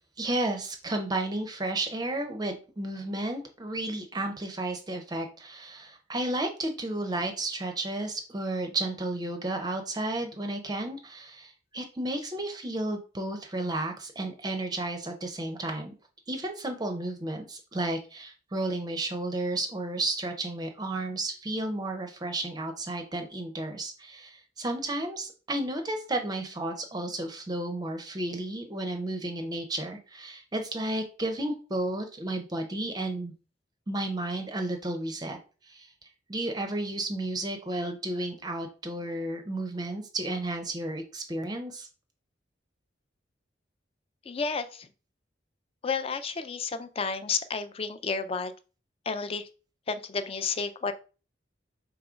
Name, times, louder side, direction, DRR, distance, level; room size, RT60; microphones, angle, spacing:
voice 1, 0.2-15.9 16.3-33.3 33.9-35.4 35.7-35.9 36.3-41.9, right 2 dB, 20° right, 5 dB, 0.5 m, -32 dB
voice 2, 44.3-44.9 45.8-48.5 49.1-49.5 49.9-50.9, left 5 dB, 30° left, 11 dB, 0.4 m, -31 dB
3.7 x 3.0 x 4.8 m, 0.35 s
head